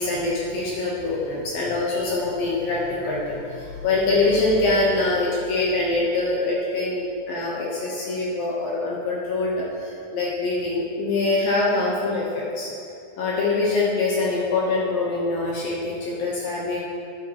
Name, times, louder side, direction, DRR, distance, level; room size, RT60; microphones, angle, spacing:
voice 1, 0.0-12.7 13.2-16.8, left 2 dB, 75° left, -5 dB, 2.1 m, -24 dB
10.5 x 10.0 x 2.9 m, 2.5 s
omnidirectional pair, 5.6 m